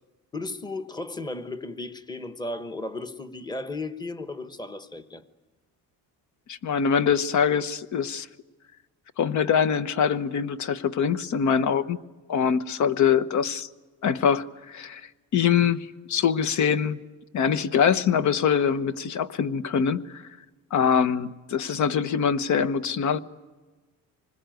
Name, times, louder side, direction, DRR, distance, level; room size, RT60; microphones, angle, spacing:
voice 1, 0.3-5.2, left 2 dB, 10° left, 1.2 m, -35 dB
voice 2, 6.5-8.3 9.2-12.0 12.3-13.7 14.0-15.0 15.3-17.0 17.3-20.2 20.7-23.2, left 7 dB, 55° left, 1.1 m, -24 dB
25.5 x 21.0 x 9.2 m
cardioid pair, 155°, 35 cm